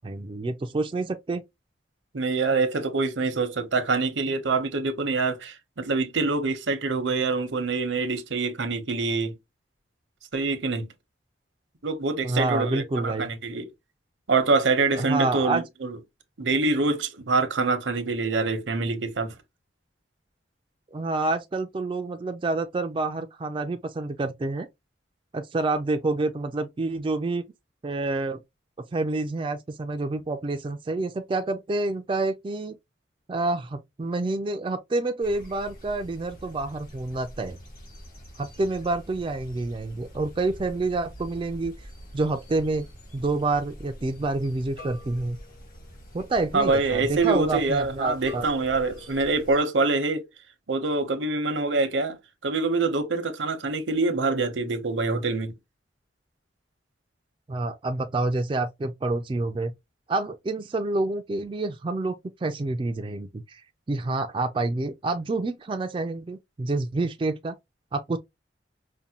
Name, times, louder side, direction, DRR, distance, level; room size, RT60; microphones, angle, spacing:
voice 1, 0.0-1.4 12.2-13.3 15.0-15.6 20.9-24.7 25.3-27.4 27.8-28.4 28.9-32.8 33.3-37.6 38.4-41.7 42.1-42.9 43.1-45.4 46.1-48.5 57.5-59.7 60.1-63.6 63.9-67.5 67.9-68.2, right 2 dB, 25° right, 0.3 m, -28 dB
voice 2, 2.1-9.4 10.3-10.9 11.8-13.7 14.3-16.0 16.4-19.3 46.5-50.2 50.7-52.2 52.4-55.5, right 3 dB, 90° right, 0.8 m, -25 dB
sound 1, 35.2-49.6, equal, 50° left, 1.7 m, -45 dB
5.2 x 2.2 x 2.8 m
head